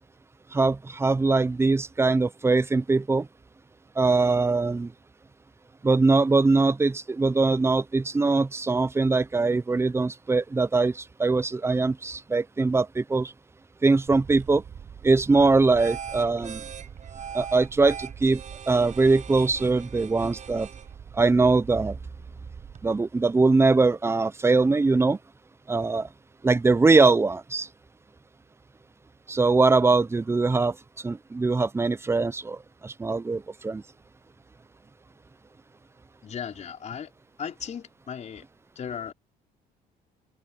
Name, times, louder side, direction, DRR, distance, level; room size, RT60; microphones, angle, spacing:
voice 1, 0.5-3.3 4.0-4.9 5.8-13.3 13.8-14.6 15.0-16.6 17.3-18.4 18.7-20.7 21.1-22.0 22.8-25.2 25.7-26.1 26.4-27.7 29.3-33.8, right 3 dB, 15° right, 0.7 m, -22 dB
sound 1, 14.1-22.9, right 8 dB, 45° right, 7.2 m, -41 dB
voice 2, 36.2-37.1 37.4-38.4 38.7-39.1, left 7 dB, 45° left, 4.5 m, -36 dB
cardioid pair, 110°, 17 cm